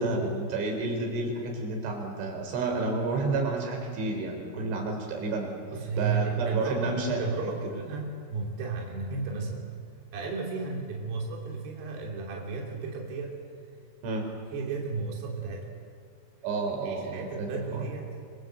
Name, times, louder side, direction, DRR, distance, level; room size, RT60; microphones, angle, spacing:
voice 1, 0.0-5.5 6.0-7.2 14.0-14.3 16.4-17.8, right 3 dB, 85° right, 2 dB, 6.7 m, -30 dB
voice 2, 5.7-9.6 10.1-13.4 14.5-15.7 16.8-18.1, right 5 dB, 60° right, -1 dB, 5.2 m, -33 dB
28.0 x 25.5 x 8.2 m, 2.4 s
omnidirectional pair, 5.3 m